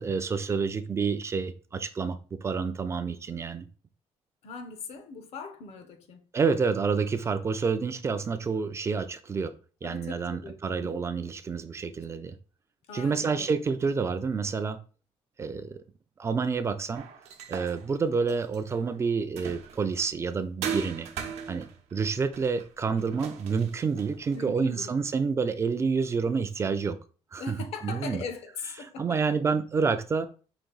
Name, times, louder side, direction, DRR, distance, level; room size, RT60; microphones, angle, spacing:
voice 1, 0.0-3.7 6.3-9.6 9.8-12.4 12.9-14.8 15.4-15.8 16.2-17.0 17.5-21.1 21.5-27.0 27.3-27.6 27.8-28.2 29.0-30.3, right 5 dB, 25° right, 0.3 m, -28 dB
voice 2, 4.4-6.3 9.8-11.0 12.0-12.1 12.9-13.6 24.3-24.9 27.4-29.2, left 4 dB, 70° left, 0.9 m, -40 dB
sound 1, 16.9-20.0 20.6-24.5, right 7 dB, 90° right, 0.8 m, -39 dB
5.1 x 2.6 x 3.8 m
cardioid pair, 150°, 11 cm